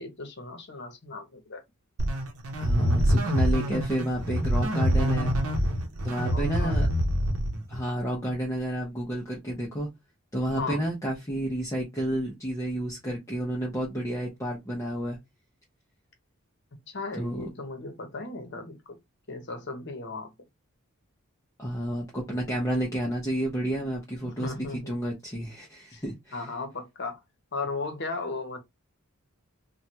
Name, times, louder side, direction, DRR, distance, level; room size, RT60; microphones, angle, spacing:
voice 1, 0.0-1.6 6.2-6.9 10.5-10.8 16.9-19.0 19.3-20.3 24.2-25.0 25.9-26.0 26.3-27.2 27.5-28.6, left 3 dB, 55° left, 0.9 m, -36 dB
sound 1, 2.0-7.8, equal, 75° right, 0.7 m, -25 dB
voice 2, 2.6-5.3 6.0-6.9 7.7-9.9 10.3-15.2 17.2-17.5 21.6-26.5, right 1 dB, 15° left, 0.6 m, -31 dB
3.2 x 2.2 x 2.8 m
head